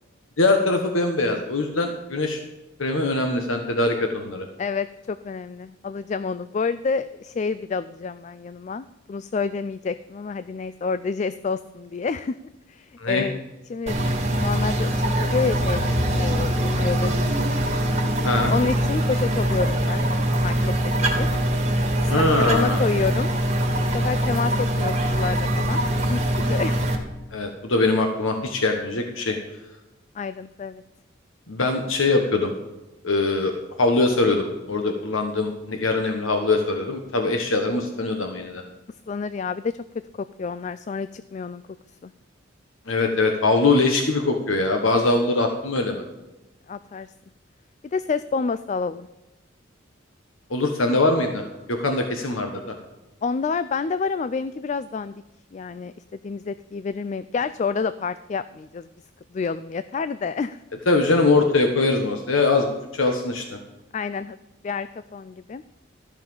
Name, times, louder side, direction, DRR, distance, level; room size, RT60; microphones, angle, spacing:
voice 1, 0.4-2.4 2.8-4.5 13.0-13.2 18.2-18.5 22.1-22.8 27.3-29.4 31.5-32.5 33.0-33.5 33.8-38.6 42.9-46.0 50.5-52.7 60.9-63.6, left 3 dB, 85° left, 3 dB, 1.3 m, -22 dB
voice 2, 4.6-12.4 12.7-13.4 13.7-14.0 14.4-15.8 16.1-17.3 18.5-20.1 20.4-21.3 22.0-23.3 23.9-25.8 26.1-26.8 30.1-30.8 39.1-39.8 40.2-41.6 42.0-42.1 46.7-47.1 47.8-49.1 53.2-55.1 55.5-58.9 59.3-60.6 63.9-64.4 64.6-65.6, left 5 dB, 35° left, 13 dB, 0.3 m, -28 dB
sound 1, 13.9-27.0, right 1 dB, 30° right, 2.2 m, -23 dB
14.0 x 5.8 x 7.0 m, 1.1 s
head